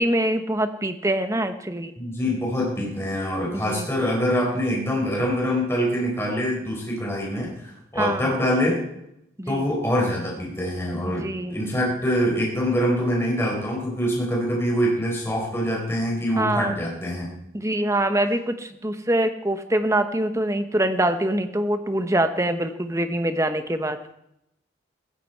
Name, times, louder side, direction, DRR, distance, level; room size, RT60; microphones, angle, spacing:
voice 1, 0.0-1.9 3.7-3.9 8.0-8.3 9.4-9.7 11.1-11.6 16.4-16.7 17.5-24.0, right 1 dB, 15° right, 8 dB, 1.0 m, -24 dB
voice 2, 2.0-8.8 9.5-17.3, equal, 15° left, -3 dB, 4.8 m, -25 dB
17.0 x 15.5 x 4.6 m, 0.81 s
head